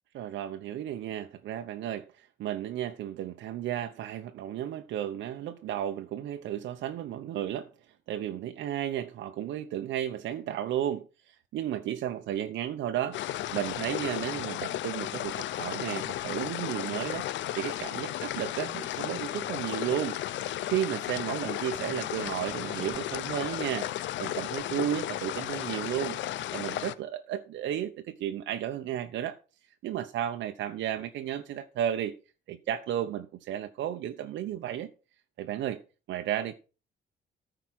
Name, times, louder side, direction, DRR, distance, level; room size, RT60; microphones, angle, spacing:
voice 1, 0.2-7.7 8.1-17.3 17.6-26.2 26.5-29.4 29.8-32.2 32.5-34.9 35.4-35.8 36.1-36.5, right 11 dB, 90° right, 0.9 m, -33 dB
sound 1, 13.1-26.9, left 13 dB, 80° left, 0.7 m, -34 dB
14.0 x 5.0 x 6.0 m
cardioid pair, 145°, 19 cm